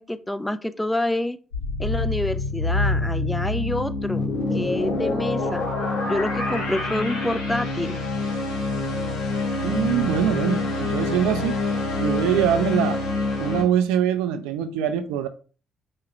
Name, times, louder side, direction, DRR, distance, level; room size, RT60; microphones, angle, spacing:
voice 1, 0.0-1.4 1.8-5.7 6.0-8.0, left 1 dB, 10° left, 0.4 m, -27 dB
sound 1, 1.5-13.6, left 3 dB, 80° left, 1.5 m, -26 dB
voice 2, 9.6-11.6 12.0-13.0 13.4-15.3, right 9 dB, 80° right, 0.3 m, -23 dB
4.9 x 2.3 x 3.0 m
hypercardioid pair, 45°, 0 cm